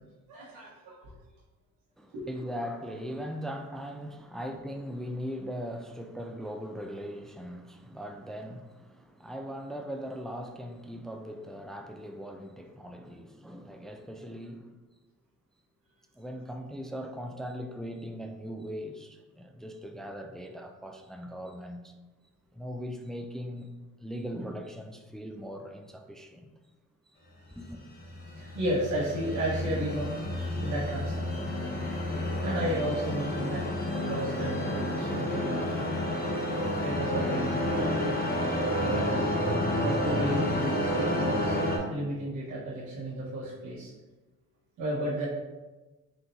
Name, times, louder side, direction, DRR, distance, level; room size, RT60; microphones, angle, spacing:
voice 1, 0.3-1.1 2.1-2.3 28.3-30.1 30.5-31.3 32.4-33.6 34.0-36.0 36.8-38.2 38.7-39.3 39.8-43.9 44.8-45.3, right 1 dB, 80° right, 1.3 m, -33 dB
voice 2, 2.0-14.8 16.1-21.9 22.5-23.7 24.0-26.5 27.5-27.8, equal, ahead, 0.3 m, -39 dB
sound 1, 27.7-41.8, left 1 dB, 30° left, 1.1 m, -30 dB
4.3 x 3.8 x 2.6 m
cardioid pair, 90°, 30 cm